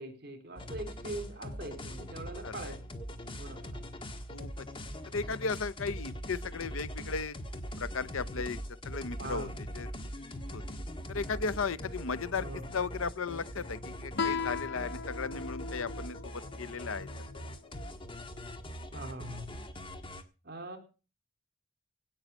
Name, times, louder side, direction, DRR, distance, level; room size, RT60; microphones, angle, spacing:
voice 1, 0.0-2.7 3.4-3.8 9.2-9.5 12.4-12.6 18.9-19.6 20.4-20.8, right 1 dB, 50° right, 3.5 m, -42 dB
sound 1, 0.6-20.2, equal, 25° left, 1.5 m, -42 dB
voice 2, 2.4-2.8 4.3-4.7 5.1-7.4 7.8-8.6 8.8-9.9 10.5-10.6 11.1-12.5 12.7-17.1, left 4 dB, 75° left, 0.7 m, -36 dB
Guitar, 14.2-17.4, left 5 dB, 55° left, 1.2 m, -37 dB
17.0 x 6.3 x 8.1 m
head